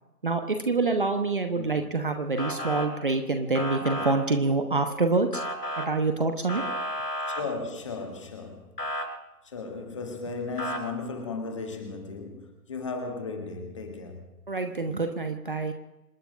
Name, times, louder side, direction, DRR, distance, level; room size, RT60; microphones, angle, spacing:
voice 1, 0.2-5.4 5.8-6.8 14.5-15.7, right 3 dB, 35° right, 1.1 m, -26 dB
voice 2, 1.5-1.9 7.3-8.6 9.4-14.2, left 4 dB, 20° left, 1.8 m, -35 dB
Motor vehicle (road) / Siren, 2.4-2.9 3.5-4.1 5.3-5.9 6.5-7.4 8.8-9.0 10.6-10.8, equal, 85° left, 4.5 m, -32 dB
27.0 x 10.0 x 5.2 m
figure-of-eight pair, 155°, 47 cm